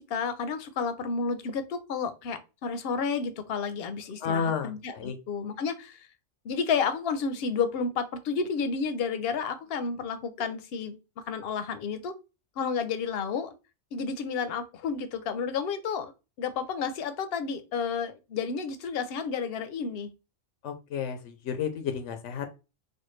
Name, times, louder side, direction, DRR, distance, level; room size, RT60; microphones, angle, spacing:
voice 1, 0.0-6.1 6.4-11.0 11.3-12.1 12.6-13.5 13.9-16.1 16.4-20.1, left 5 dB, 65° left, 0.7 m, -31 dB
voice 2, 4.2-5.1 20.6-22.5, left 7 dB, 90° left, 0.9 m, -31 dB
4.2 x 2.2 x 3.1 m
omnidirectional pair, 1.2 m